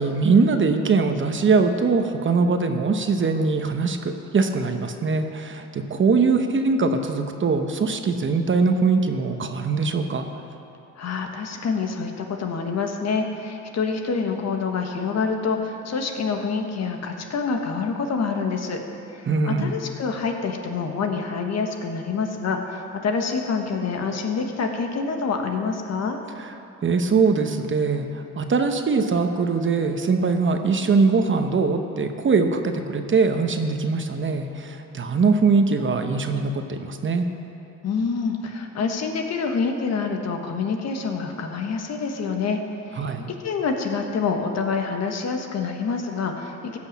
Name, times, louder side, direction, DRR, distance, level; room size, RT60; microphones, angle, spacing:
voice 1, 0.0-10.3 19.3-19.8 26.4-26.5 26.8-37.2 43.0-43.3, right 4 dB, 40° right, 6 dB, 1.0 m, -22 dB
voice 2, 11.0-18.8 19.1-26.2 37.8-42.6 42.9-46.8, left 5 dB, 60° left, 4 dB, 1.4 m, -27 dB
16.0 x 6.3 x 7.4 m, 2.9 s
cardioid pair, 90°, 30 cm